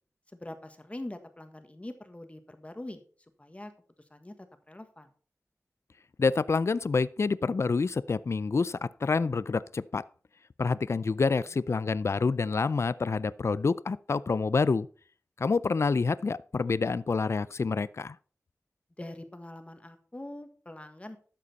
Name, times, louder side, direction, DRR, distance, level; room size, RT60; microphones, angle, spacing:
voice 1, 0.3-3.0 3.4-3.7 4.1-4.3 4.7-5.1 19.0-21.2, left 1 dB, 25° left, 1.4 m, -43 dB
voice 2, 6.2-10.0 10.6-14.9 15.4-18.2, left 4 dB, 55° left, 0.4 m, -27 dB
12.5 x 7.7 x 4.1 m
wide cardioid pair, 85°, 6 cm